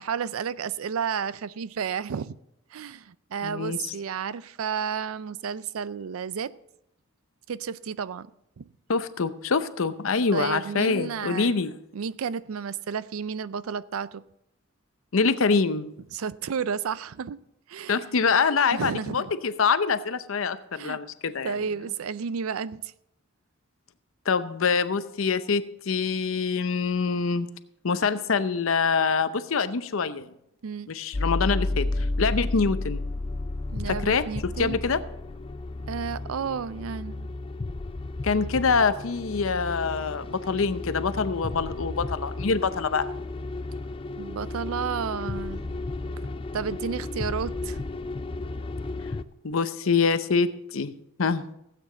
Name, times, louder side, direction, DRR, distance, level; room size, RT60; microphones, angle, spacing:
voice 1, 0.0-2.4 2.7-6.5 7.5-8.3 8.6-8.7 10.3-11.6 11.9-14.2 16.1-17.4 17.7-18.1 18.7-19.3 20.8-21.0 21.4-22.9 30.6-30.9 33.7-34.8 35.9-37.3 44.2-45.7 46.5-47.8, right 6 dB, 80° right, 0.4 m, -32 dB
voice 2, 3.4-3.9 8.9-11.7 15.1-15.9 17.9-21.5 24.3-27.5 27.8-30.3 30.9-33.0 33.9-35.0 38.2-43.1 49.4-50.9 51.2-51.4, left 5 dB, 70° left, 0.7 m, -25 dB
sound 1, 31.1-49.2, left 2 dB, 25° left, 0.4 m, -33 dB
16.0 x 8.6 x 3.9 m
head